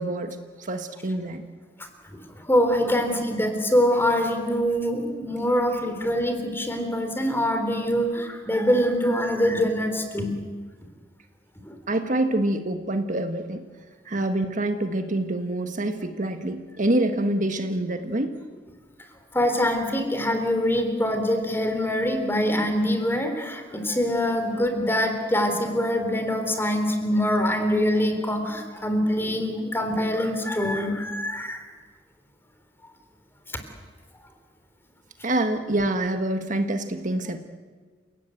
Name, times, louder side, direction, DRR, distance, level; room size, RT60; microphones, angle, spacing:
voice 1, 0.0-1.4 11.9-13.6 14.0-18.4 35.2-37.4, right 1 dB, 45° right, 7 dB, 1.5 m, -26 dB
voice 2, 2.1-10.3 11.6-11.8 19.3-31.6, equal, 15° left, 6 dB, 3.4 m, -24 dB
29.0 x 17.0 x 9.2 m, 1.4 s
head